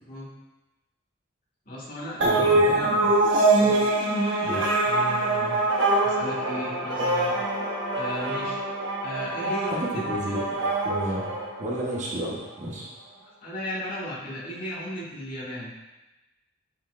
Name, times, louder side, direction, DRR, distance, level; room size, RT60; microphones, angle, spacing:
voice 1, 1.7-3.1 3.6-3.8 4.8-5.6 6.0-7.3 7.9-8.6 9.0-10.5 13.4-15.7, equal, 45° left, -7 dB, 1.7 m, -36 dB
voice 2, 2.2-2.8 4.4-4.6 9.7-10.4 10.8-11.2 11.6-12.9, right 1 dB, 40° right, -4 dB, 1.0 m, -31 dB
sound 1, 2.2-12.0, right 2 dB, 70° right, 0.9 m, -24 dB
9.3 x 4.3 x 2.5 m, 1.0 s
head